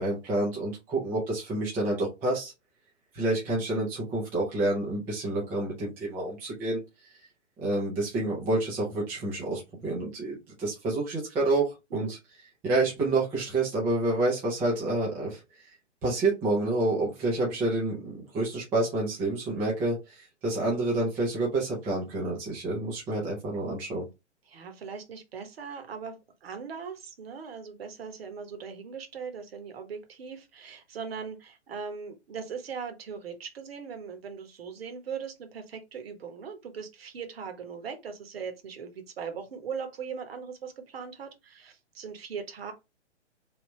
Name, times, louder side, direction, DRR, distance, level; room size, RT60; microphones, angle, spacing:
voice 1, 0.0-2.5 3.1-6.8 7.6-12.2 12.6-15.7 16.0-24.1, right 2 dB, 5° right, 0.4 m, -28 dB
voice 2, 24.5-42.7, right 6 dB, 55° right, 1.0 m, -39 dB
3.3 x 2.4 x 3.1 m
figure-of-eight pair, 120°, 35 cm